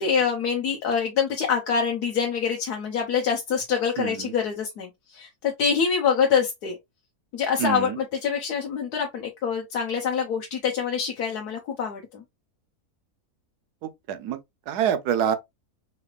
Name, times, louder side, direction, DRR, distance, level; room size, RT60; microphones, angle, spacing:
voice 1, 0.0-6.8 7.3-12.2, left 6 dB, 90° left, 1.4 m, -25 dB
voice 2, 7.6-7.9 14.1-14.4 14.7-15.4, right 9 dB, 90° right, 1.3 m, -25 dB
4.7 x 3.2 x 2.4 m
omnidirectional pair, 1.6 m